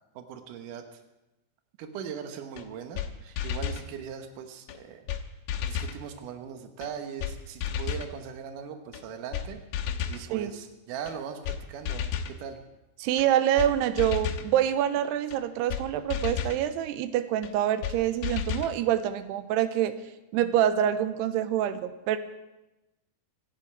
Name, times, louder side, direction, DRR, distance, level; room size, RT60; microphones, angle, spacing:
voice 1, 0.2-0.9 1.8-5.1 5.7-9.6 10.1-12.6, right 7 dB, 65° right, 6 dB, 2.6 m, -40 dB
sound 1, 2.6-2.7 3.0-3.1 3.4-3.9 4.7-4.8 5.1-5.2 5.5-6.0 6.8-6.9 7.2-7.3 7.6-8.1 8.9-9.0 9.3-9.5 9.7-10.2 11.1-11.2 11.5-11.6 11.9-12.4 13.2-13.3 13.6-13.7 14.0-14.5 15.3-15.4 15.7-15.8 16.1-16.6 17.4-17.5 17.8-18.0 18.2-18.7, left 8 dB, 70° left, 2.6 m, -32 dB
voice 2, 13.0-19.9 20.3-22.2, right 11 dB, 90° right, 11 dB, 2.8 m, -26 dB
26.0 x 10.5 x 4.7 m, 0.98 s
omnidirectional pair, 4.7 m